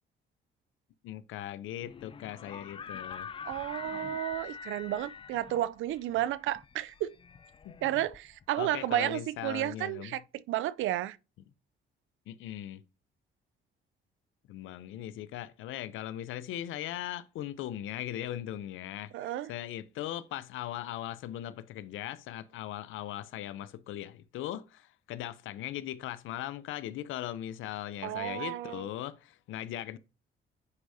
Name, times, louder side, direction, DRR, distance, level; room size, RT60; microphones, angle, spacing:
voice 1, 1.0-3.3 8.6-10.2 12.3-12.8 14.5-30.0, left 12 dB, 85° left, 0.6 m, -39 dB
sound 1, 1.8-8.7, left 6 dB, 25° left, 0.4 m, -45 dB
voice 2, 3.4-7.1 7.8-11.2 19.1-19.5 28.0-28.8, right 13 dB, 80° right, 0.4 m, -32 dB
9.7 x 4.7 x 2.7 m
cardioid pair, 90°, 20 cm